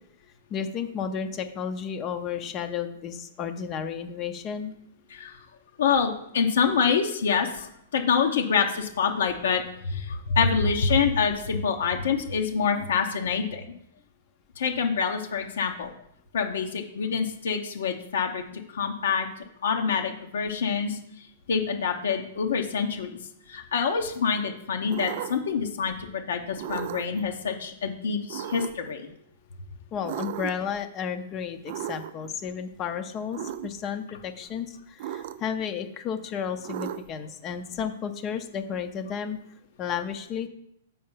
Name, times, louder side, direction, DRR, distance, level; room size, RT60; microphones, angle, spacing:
voice 1, 0.5-4.7 29.9-39.4 39.8-40.5, left 7 dB, 30° left, 7 dB, 0.6 m, -32 dB
voice 2, 5.8-13.7 14.6-15.9 16.3-19.3 19.6-21.0 21.5-23.2 23.5-29.1, left 6 dB, 75° left, 3 dB, 0.9 m, -26 dB
sound 1, 24.9-25.6 26.6-27.2 28.3-28.9 30.0-30.7 31.7-32.3 33.3-33.7 35.0-35.6 36.6-37.3, right 11 dB, 55° right, 0.4 m, -35 dB
5.6 x 4.3 x 5.6 m, 0.74 s
hypercardioid pair, 130°, 0 cm